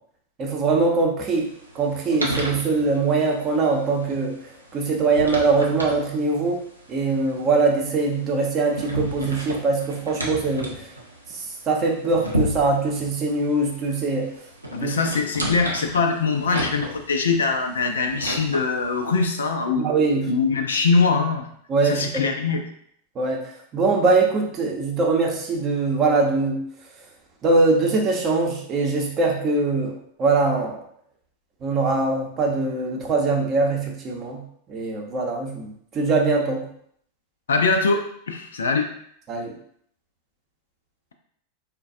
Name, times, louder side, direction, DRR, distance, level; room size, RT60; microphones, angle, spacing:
voice 1, 0.4-1.5 1.8-4.3 4.7-6.6 6.9-10.7 11.7-14.3 14.8-14.9 19.8-20.3 21.7-22.2 23.2-23.4 23.7-26.6 27.4-29.9 30.2-30.7 31.6-34.4 34.7-36.6 39.3-39.5, right 3 dB, 30° right, 0 dB, 0.7 m, -22 dB
sound 1, 1.2-19.5, equal, 85° right, 0.6 m, -34 dB
voice 2, 14.7-19.9 20.3-21.5 21.8-22.6 37.5-38.9, left 4 dB, 65° left, 5 dB, 0.4 m, -22 dB
3.8 x 2.1 x 2.6 m, 0.66 s
figure-of-eight pair, 90°, 0 cm